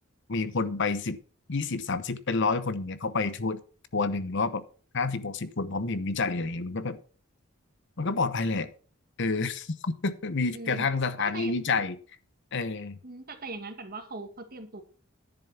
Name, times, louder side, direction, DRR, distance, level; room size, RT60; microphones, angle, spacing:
voice 1, 0.3-1.2 1.5-3.6 3.9-4.6 4.9-7.0 8.0-8.7 9.2-12.0 12.5-13.0, left 4 dB, 60° left, 14 dB, 0.9 m, -29 dB
voice 2, 10.5-10.9 11.2-11.5 13.0-14.8, right 3 dB, 45° right, 6 dB, 1.9 m, -40 dB
10.5 x 7.2 x 5.8 m, 0.39 s
head